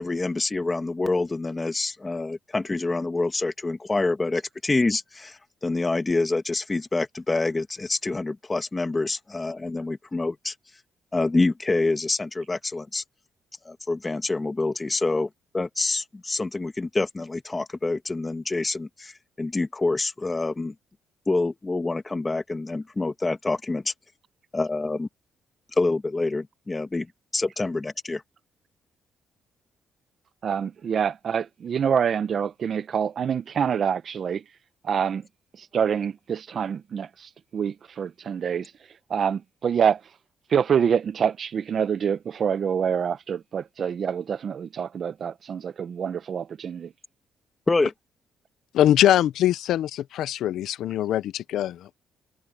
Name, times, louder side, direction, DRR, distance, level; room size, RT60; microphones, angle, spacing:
voice 1, 0.0-10.5 11.1-13.0 13.6-15.3 15.5-19.1 19.4-20.7 21.3-23.9 24.5-25.1 25.8-27.1 27.3-28.2 47.7-47.9, left 3 dB, 20° left, 1.6 m, -26 dB
voice 2, 30.4-34.4 34.8-35.3 35.6-38.7 39.1-40.0 40.5-46.9, right 7 dB, 55° right, 0.8 m, -26 dB
voice 3, 48.7-52.0, left 12 dB, 80° left, 0.6 m, -22 dB
cardioid pair, 90°, 0 cm